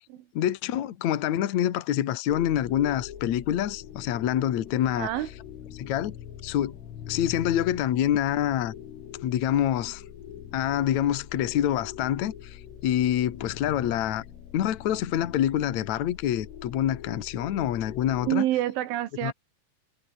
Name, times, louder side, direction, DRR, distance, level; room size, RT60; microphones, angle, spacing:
voice 1, 0.3-5.1 5.8-6.2 6.4-6.7 7.1-8.7 9.2-10.0 10.5-14.2 14.5-18.4 19.2-19.3, left 11 dB, 70° left, 1.7 m, -26 dB
sound 1, 2.3-18.3, left 9 dB, 90° left, 5.7 m, -43 dB
voice 2, 5.0-5.3 18.3-19.3, right 14 dB, 80° right, 4.0 m, -27 dB
omnidirectional pair, 5.6 m